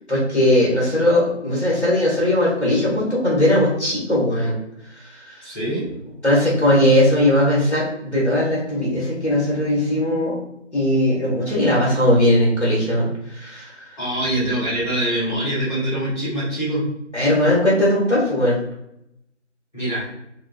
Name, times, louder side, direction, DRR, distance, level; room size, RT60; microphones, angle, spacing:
voice 1, 0.1-4.5 4.9-5.4 6.2-10.4 10.7-14.0 17.1-18.6, left 1 dB, 65° left, -6 dB, 1.3 m, -19 dB
voice 2, 5.4-5.9 14.0-16.8 19.7-20.0, right 1 dB, 35° left, -10 dB, 1.2 m, -24 dB
2.7 x 2.5 x 2.3 m, 0.80 s
figure-of-eight pair, 175°, 37 cm